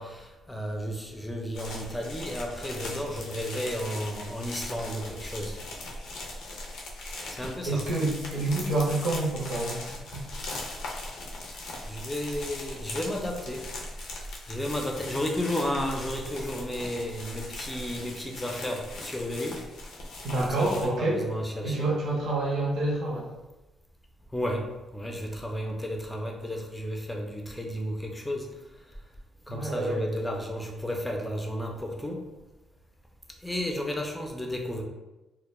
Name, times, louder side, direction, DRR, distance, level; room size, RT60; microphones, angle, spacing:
voice 1, 0.0-5.6 7.4-7.9 11.9-13.6 14.5-19.6 20.4-21.9 24.3-28.5 29.5-32.2 33.4-34.8, equal, 5° left, 1 dB, 0.4 m, -33 dB
sound 1, 1.5-20.9, left 2 dB, 85° left, 0.5 m, -39 dB
voice 2, 7.6-9.9 10.1-10.3 20.2-21.2 21.6-23.3 29.5-30.0, right 2 dB, 70° right, -4 dB, 0.6 m, -28 dB
2.1 x 2.0 x 3.0 m, 1.0 s
cardioid pair, 90°, 0 cm